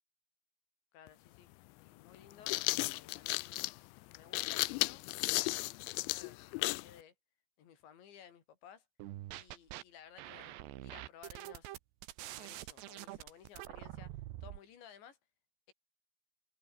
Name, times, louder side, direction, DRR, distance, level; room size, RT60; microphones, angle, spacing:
voice 1, 0.9-1.5 1.8-2.6 2.8-3.6 4.1-5.0 5.5-7.1 7.6-8.9 9.4-11.8 12.3-15.2, left 8 dB, 65° left, 5.2 m, -57 dB
sound 1, 1.1-1.2 2.2-6.9, left 23 dB, 85° left, 2.6 m, -34 dB
sound 2, 9.0-9.8 10.2-14.6, right 15 dB, 70° right, 3.1 m, -46 dB
omnidirectional pair, 5.6 m